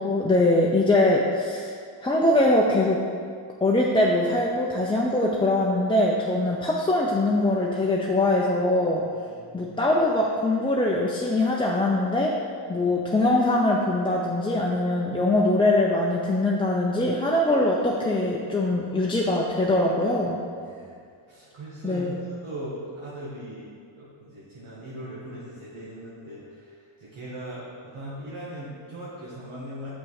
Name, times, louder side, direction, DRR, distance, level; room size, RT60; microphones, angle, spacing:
voice 1, 0.0-1.7 2.0-3.0 3.6-9.0 9.5-12.3 12.7-20.4 21.8-22.2, left 1 dB, 10° left, -3 dB, 0.6 m, -22 dB
voice 2, 9.3-9.7 12.7-12.9 20.6-21.0 21.3-23.7 24.0-29.9, right 1 dB, 70° right, -8 dB, 2.0 m, -39 dB
6.4 x 6.1 x 4.8 m, 2.2 s
cardioid pair, 105°, 50 cm